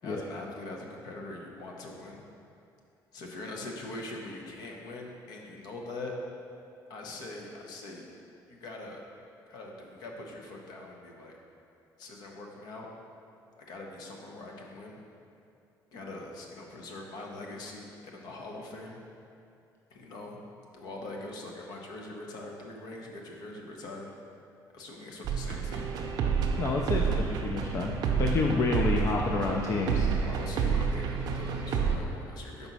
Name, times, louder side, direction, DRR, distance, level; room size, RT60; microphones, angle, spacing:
voice 1, 0.0-2.2 3.1-6.1 6.9-8.2 8.5-9.0 9.5-11.4 12.0-12.9 13.7-15.0 15.9-19.0 19.9-20.4 20.7-24.2 24.7-25.9 30.2-32.7, left 2 dB, 65° left, 0 dB, 0.9 m, -42 dB
sound 1, 25.2-32.0, right 6 dB, 65° right, 0.6 m, -29 dB
voice 2, 26.6-27.9 28.2-30.1, left 4 dB, 40° left, 0 dB, 0.4 m, -29 dB
5.3 x 4.0 x 6.0 m, 2.6 s
cardioid pair, 135°, 7 cm